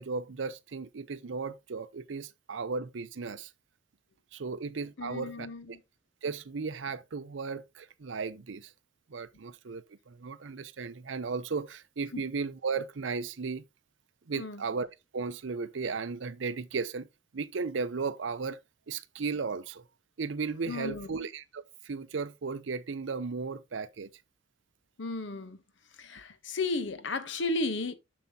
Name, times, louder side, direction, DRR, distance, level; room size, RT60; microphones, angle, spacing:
voice 1, 0.0-3.5 4.3-5.5 6.2-8.7 9.1-13.6 14.3-14.9 15.1-17.1 17.3-18.6 18.9-19.8 20.2-24.1, right 4 dB, 70° right, 0.6 m, -35 dB
voice 2, 5.0-5.8 12.1-12.2 14.4-14.6 20.6-21.1 25.0-25.6 25.9-27.9, left 3 dB, 65° left, 1.0 m, -34 dB
7.2 x 7.0 x 2.8 m
head